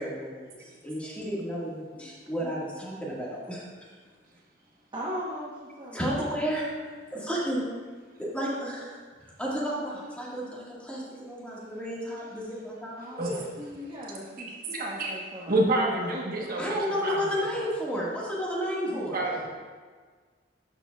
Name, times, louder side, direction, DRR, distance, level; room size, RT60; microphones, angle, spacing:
voice 1, 0.0-3.7 5.9-6.7 7.1-7.7 8.2-13.2 16.6-19.2, equal, 5° left, -5 dB, 1.7 m, -32 dB
voice 2, 4.9-6.2 13.0-17.3 18.8-19.0, equal, 25° right, -6 dB, 1.0 m, -40 dB
voice 3, 13.2-13.5 14.5-15.1 15.5-17.7 19.1-19.5, right 2 dB, 50° right, -2 dB, 1.1 m, -29 dB
12.0 x 6.9 x 2.3 m, 1.5 s
head